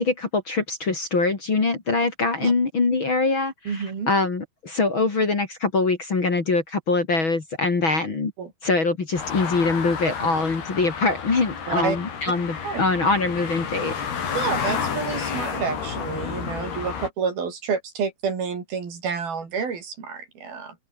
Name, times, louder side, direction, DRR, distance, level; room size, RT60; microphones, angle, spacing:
voice 1, 0.0-8.3 8.6-13.9, left 3 dB, 35° left, 3.3 m, -23 dB
voice 2, 3.7-4.1 8.4-8.5 11.7-12.0 12.6-12.8 14.3-20.8, right 6 dB, 70° right, 6.4 m, -29 dB
sound 1, 9.1-17.1, left 7 dB, 90° left, 6.2 m, -31 dB
open air
omnidirectional pair, 4.4 m